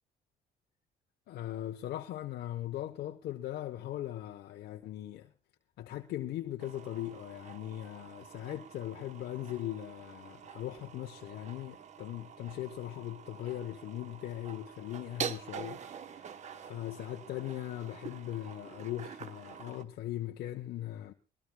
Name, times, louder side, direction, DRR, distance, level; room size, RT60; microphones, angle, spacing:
voice 1, 1.3-5.3 5.8-21.1, left 13 dB, 70° left, 1.0 m, -39 dB
sound 1, 6.6-19.8, right 7 dB, 45° right, 0.9 m, -46 dB
22.0 x 17.5 x 2.3 m
cardioid pair, 110°, 17 cm